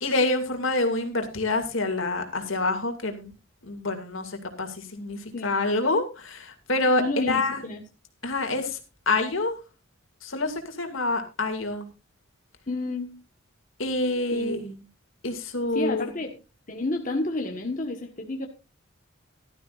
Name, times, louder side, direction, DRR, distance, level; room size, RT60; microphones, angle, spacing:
voice 1, 0.0-3.3 3.6-7.6 8.2-8.8 9.1-9.6 10.2-11.9 13.8-14.6 15.2-16.1, left 2 dB, 75° left, 5 dB, 2.4 m, -27 dB
voice 2, 5.3-5.7 7.0-7.8 12.7-13.1 14.3-14.8 15.7-16.4 16.7-18.5, left 2 dB, 40° left, 2 dB, 1.4 m, -30 dB
16.0 x 12.5 x 2.5 m, 0.29 s
head